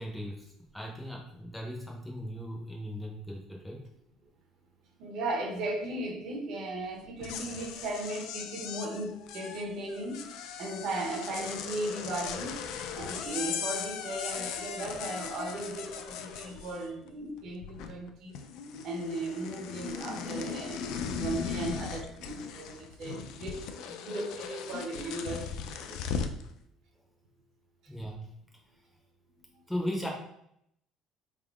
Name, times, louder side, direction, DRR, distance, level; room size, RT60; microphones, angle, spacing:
voice 1, 0.0-3.8 27.9-28.3 29.7-30.1, equal, 5° left, -1 dB, 0.6 m, -37 dB
voice 2, 5.0-10.3 10.6-12.7 13.0-18.4 18.8-25.5 25.8-26.0, right 2 dB, 50° right, 1 dB, 0.8 m, -36 dB
sound 1, 7.1-17.1 17.4-18.1 18.3-26.4, left 7 dB, 65° left, 0.3 m, -38 dB
4.3 x 3.5 x 2.4 m, 0.75 s
cardioid pair, 170°, 0 cm